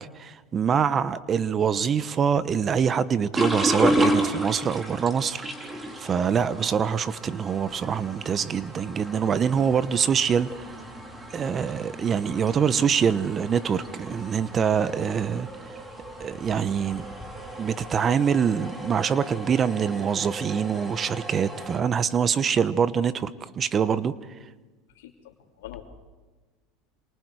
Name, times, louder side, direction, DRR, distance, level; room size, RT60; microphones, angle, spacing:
voice 1, 0.0-5.4 5.7-10.7 11.3-15.8 16.2-17.0 17.6-23.3 23.6-24.1, right 7 dB, 30° right, 15 dB, 1.0 m, -25 dB
untitled toilet flushing, 3.3-21.8, right 1 dB, 15° right, 4.8 m, -32 dB
voice 2, 24.9-25.8, left 14 dB, 85° left, -3 dB, 2.9 m, -44 dB
27.5 x 27.5 x 4.9 m, 1.3 s
supercardioid pair, 105°, 0 cm